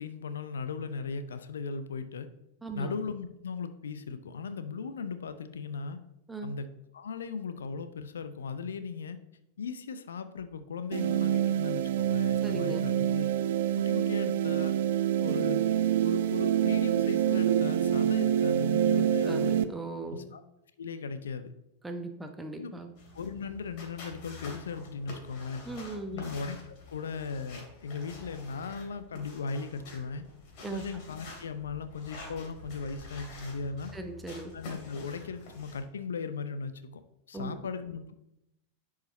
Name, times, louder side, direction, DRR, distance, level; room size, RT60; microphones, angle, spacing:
voice 1, 0.0-2.3 2.7-6.0 6.4-6.7 6.9-9.2 9.6-13.3 13.8-14.7 15.2-15.6 16.0-19.5 20.1-20.4 20.8-21.5 22.6-22.7 23.1-25.6 26.1-26.6 26.9-30.3 30.7-33.9 34.5-37.0 37.3-38.2, left 5 dB, 65° left, 11 dB, 0.6 m, -37 dB
voice 2, 2.6-2.9 6.3-6.5 12.4-12.9 19.0-20.3 21.8-22.9 25.7-26.3 30.6-30.9 33.9-34.6 37.3-37.5, right 2 dB, 10° right, 6 dB, 1.0 m, -38 dB
sound 1, 10.9-19.6, right 10 dB, 55° right, 0.4 m, -26 dB
sound 2, 23.0-35.8, left 2 dB, 45° left, 2.7 m, -48 dB
10.5 x 4.9 x 4.1 m, 0.85 s
figure-of-eight pair, 90°, 0 cm